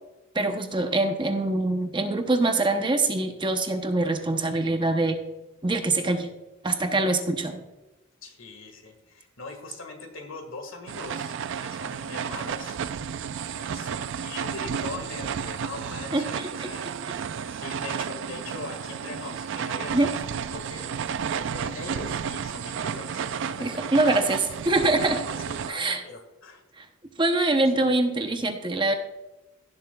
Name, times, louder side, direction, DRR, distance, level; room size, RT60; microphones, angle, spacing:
voice 1, 0.3-5.2 5.6-6.3 6.6-7.6 16.1-16.7 19.9-20.1 23.6-25.2 25.7-26.0 26.8-26.9 27.2-28.9, right 2 dB, 20° right, 6 dB, 0.7 m, -24 dB
voice 2, 8.2-11.3 11.6-12.8 13.6-16.4 16.7-16.9 17.5-20.2 20.5-21.0 21.3-23.9 25.3-26.6 27.8-27.9, left 3 dB, 65° left, 5 dB, 1.8 m, -41 dB
sound 1, 10.9-25.7, right 7 dB, 60° right, 0.3 m, -32 dB
16.5 x 7.4 x 2.3 m, 1.1 s
head